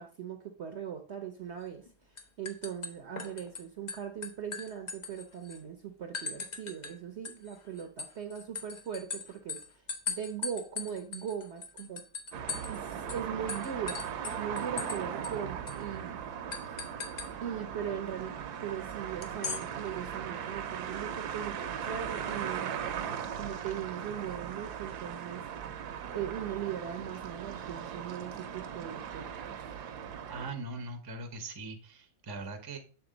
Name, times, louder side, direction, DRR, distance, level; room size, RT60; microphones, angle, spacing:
voice 1, 0.0-12.0 12.7-16.2 16.6-16.8 17.4-22.8 23.3-25.4 26.1-29.6, right 8 dB, 60° right, 5 dB, 0.7 m, -40 dB
sound 1, 1.6-1.9 2.2-3.6 3.9-5.6 6.1-6.9 7.2-12.8 13.1-13.2 13.5-15.0 15.2-15.3 15.7-15.8 16.5-17.3 19.2-19.6, left 5 dB, 90° left, 0.3 m, -39 dB
sound 2, 12.3-30.5, right 8 dB, 75° right, 1.2 m, -38 dB
voice 2, 30.3-32.8, right 3 dB, 30° right, 5 dB, 0.4 m, -40 dB
7.0 x 3.8 x 3.8 m, 0.38 s
omnidirectional pair, 1.8 m